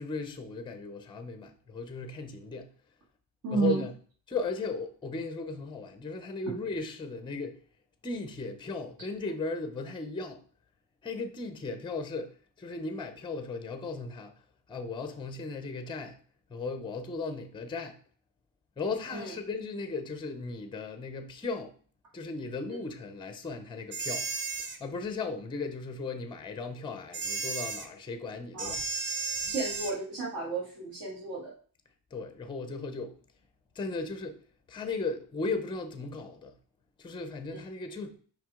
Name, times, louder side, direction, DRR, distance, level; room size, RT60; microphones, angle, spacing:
voice 1, 0.0-2.7 3.5-3.9 4.3-7.6 8.0-10.4 11.0-12.3 12.6-14.3 14.7-16.2 16.5-18.0 18.8-21.8 22.1-24.3 24.8-28.8 32.1-33.1 33.8-34.4 34.7-36.5 37.0-38.2, left 3 dB, 10° left, 0.6 m, -36 dB
voice 2, 3.4-3.9 19.1-19.3 28.5-28.7 29.5-31.5 37.5-37.6, right 4 dB, 55° right, 2.3 m, -32 dB
sound 1, 23.9-24.8 27.1-27.9 28.6-30.0, right 4 dB, 30° right, 0.6 m, -34 dB
6.0 x 5.2 x 3.7 m
cardioid pair, 175°, 41 cm